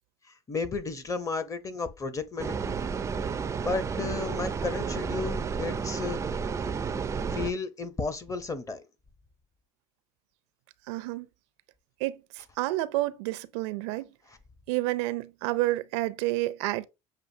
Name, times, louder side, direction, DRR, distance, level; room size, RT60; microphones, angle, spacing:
voice 1, 0.3-2.8 3.6-6.2 7.3-8.8, left 4 dB, 25° left, 0.7 m, -33 dB
sound 1, 2.4-7.5, right 5 dB, 20° right, 0.3 m, -31 dB
voice 2, 10.9-11.3 12.0-14.1 14.7-16.9, right 18 dB, 80° right, 0.5 m, -29 dB
6.8 x 2.5 x 2.7 m
supercardioid pair, 100°, 14 cm